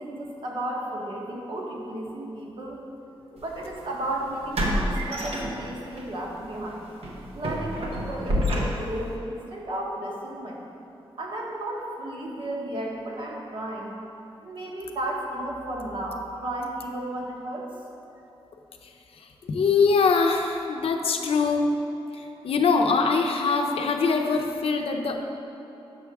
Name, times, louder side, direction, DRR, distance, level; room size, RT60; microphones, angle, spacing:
voice 1, 0.0-2.8 3.4-6.8 7.3-10.6 11.2-13.9 14.4-17.7, right 1 dB, 60° right, -2 dB, 1.1 m, -33 dB
sound 1, 3.4-3.6 4.5-6.0 6.4-6.6 7.0-9.1, equal, 85° right, 0.9 m, -28 dB
voice 2, 19.2-21.7 22.1-25.2, left 4 dB, 75° left, 4 dB, 0.5 m, -23 dB
7.3 x 3.5 x 6.0 m, 3.0 s
wide cardioid pair, 150°, 10 cm